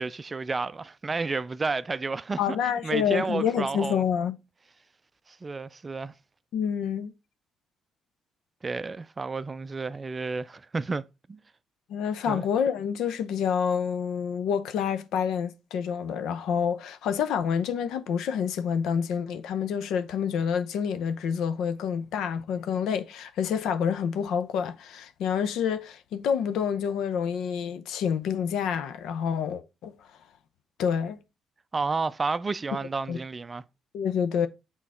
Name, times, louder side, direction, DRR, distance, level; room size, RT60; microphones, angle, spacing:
voice 1, 0.0-2.6 2.8-4.0 5.3-6.1 8.6-11.4 12.3-12.5 31.7-33.6, right 4 dB, 30° right, 0.4 m, -31 dB
voice 2, 2.4-4.4 6.5-7.1 11.9-29.9 30.8-31.2 33.1-33.2 33.9-34.5, left 7 dB, 85° left, 0.7 m, -28 dB
6.2 x 3.9 x 4.3 m
cardioid pair, 90°, 0 cm